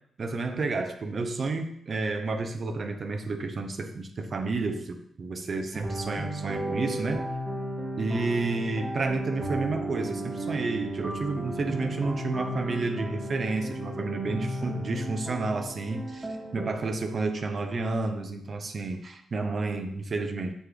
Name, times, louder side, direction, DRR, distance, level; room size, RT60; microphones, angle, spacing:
voice 1, 0.2-7.3 8.0-20.5, right 3 dB, 50° right, 5 dB, 0.6 m, -31 dB
sound 1, 5.7-16.7, right 1 dB, 20° right, 1.1 m, -34 dB
6.1 x 3.2 x 2.3 m, 0.69 s
hypercardioid pair, 40°, 0 cm